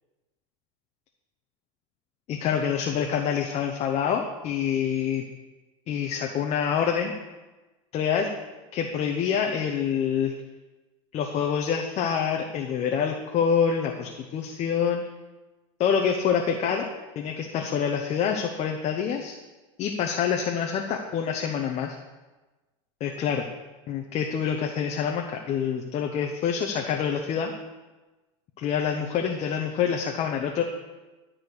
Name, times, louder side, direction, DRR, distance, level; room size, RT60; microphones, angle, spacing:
voice 1, 2.3-5.2 5.9-7.1 7.9-8.3 8.7-10.3 11.1-15.0 15.8-16.9 17.1-19.4 19.8-22.0 23.0-23.5 23.9-27.5 28.6-30.6, left 7 dB, 40° left, 2 dB, 0.9 m, -26 dB
12.0 x 4.4 x 6.6 m, 1.2 s
supercardioid pair, 110°, 16 cm